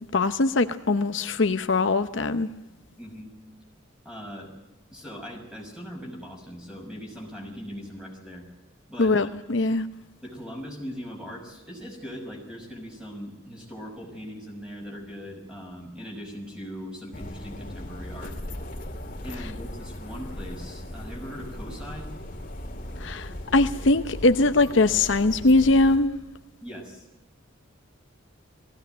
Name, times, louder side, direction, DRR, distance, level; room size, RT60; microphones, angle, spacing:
voice 1, 0.0-2.5 9.0-9.9 23.0-26.1, left 2 dB, 60° left, 0.8 m, -21 dB
voice 2, 3.0-3.3 4.0-4.5 4.9-8.4 8.9-9.3 10.2-18.4 19.2-22.1 26.6-27.1, equal, 5° right, 6.1 m, -40 dB
sound 1, 17.1-26.0, left 1 dB, 40° left, 2.2 m, -38 dB
19.5 x 16.0 x 9.2 m
head